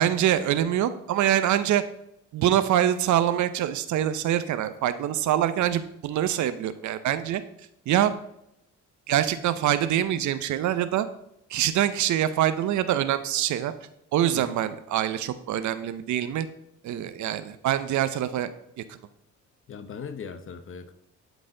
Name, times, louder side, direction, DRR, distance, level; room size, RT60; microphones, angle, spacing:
voice 1, 0.0-1.8 2.3-7.4 7.9-8.1 9.1-11.1 11.5-13.7 14.1-16.5 16.8-18.5 18.8-19.0, right 11 dB, 70° right, 13 dB, 0.6 m, -24 dB
voice 2, 19.7-20.9, left 6 dB, 45° left, 11 dB, 0.8 m, -39 dB
11.5 x 4.1 x 3.8 m, 0.81 s
cardioid pair, 90°, 30 cm